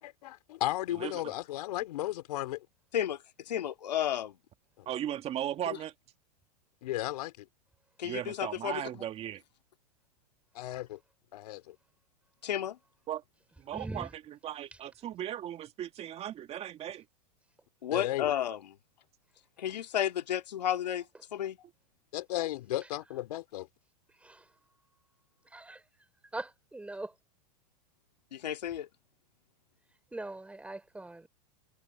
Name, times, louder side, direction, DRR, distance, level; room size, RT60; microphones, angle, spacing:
voice 1, 0.0-2.7 4.8-4.9 6.8-7.5 10.5-11.0 11.3-11.8 17.9-18.3 22.1-23.7, left 15 dB, 70° left, 3.7 m, -35 dB
voice 2, 1.0-1.3 4.9-5.9 8.0-9.4 13.1-13.2 13.6-17.1, right 11 dB, 30° right, 2.0 m, -37 dB
voice 3, 3.5-4.4 8.0-9.0 12.4-12.8 17.8-18.6 19.6-21.0 21.3-21.6 28.3-28.9, left 10 dB, 90° left, 2.3 m, -32 dB
voice 4, 13.7-14.1 24.2-24.5 25.5-25.8 26.3-27.1 30.1-31.3, right 2 dB, 5° right, 3.4 m, -41 dB
hypercardioid pair, 125°, 21 cm